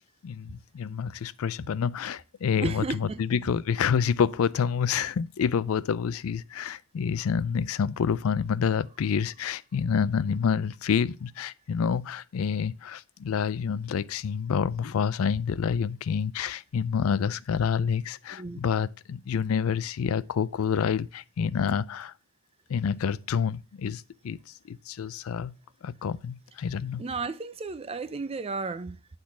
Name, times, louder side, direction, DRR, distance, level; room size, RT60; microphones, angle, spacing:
voice 1, 0.2-22.1 22.7-24.4 24.6-25.5 25.8-27.0, left 7 dB, 70° left, 0.4 m, -28 dB
voice 2, 2.6-3.2 18.3-18.6 27.0-28.9, right 3 dB, 25° right, 0.4 m, -33 dB
8.5 x 3.9 x 5.8 m
head